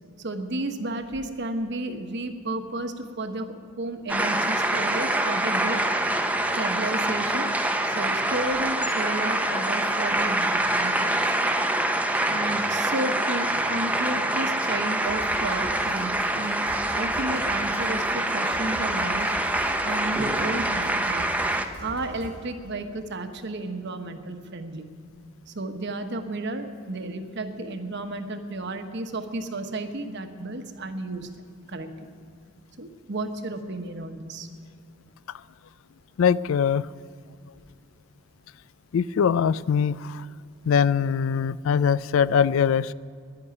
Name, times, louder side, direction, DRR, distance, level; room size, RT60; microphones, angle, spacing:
voice 1, 0.2-5.8 6.5-7.5 7.8-11.4 12.3-16.6 16.9-19.3 19.8-21.3 21.8-24.9 25.5-31.3 31.7-32.1 32.8-34.5, right 2 dB, 55° right, 7 dB, 1.1 m, -32 dB
sound 1, 4.1-21.7, right 1 dB, 5° right, 0.7 m, -25 dB
sound 2, 15.0-22.4, equal, 45° left, 3.7 m, -43 dB
voice 2, 36.2-36.8 38.9-40.3 40.7-42.9, left 7 dB, 70° left, 19 dB, 0.3 m, -22 dB
11.0 x 10.5 x 9.7 m, 2.3 s
head